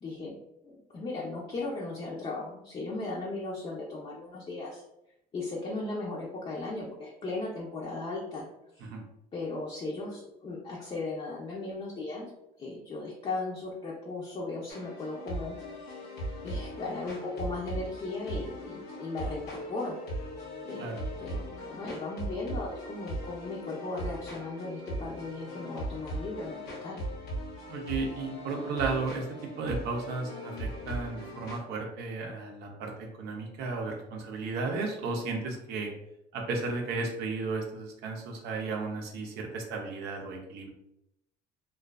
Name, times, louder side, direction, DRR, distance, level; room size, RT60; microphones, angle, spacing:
voice 1, 0.0-0.3 0.6-4.8 5.3-8.4 8.7-8.9 9.3-12.3 12.6-16.1 16.4-20.2 20.6-27.0, left 3 dB, 35° left, -4 dB, 0.5 m, -37 dB
sound 1, 14.7-31.6, right 1 dB, 80° left, 0.7 m, -39 dB
voice 2, 27.7-35.9 36.3-40.7, right 3 dB, 75° right, 1 dB, 0.5 m, -34 dB
2.5 x 2.3 x 2.2 m, 0.82 s
cardioid pair, 110°, 17 cm